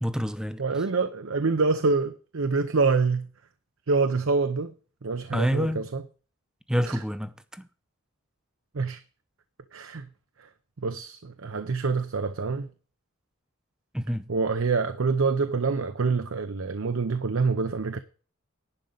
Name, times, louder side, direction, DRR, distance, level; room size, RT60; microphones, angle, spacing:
voice 1, 0.0-0.6 5.3-5.8 6.7-7.7 13.9-14.2, equal, 5° right, 0.7 m, -27 dB
voice 2, 0.6-3.3 3.9-4.7 5.0-6.0 6.9-7.0 8.7-9.0 9.7-10.1 10.8-12.7 14.3-18.0, right 4 dB, 70° right, 0.7 m, -26 dB
11.0 x 5.3 x 7.8 m
head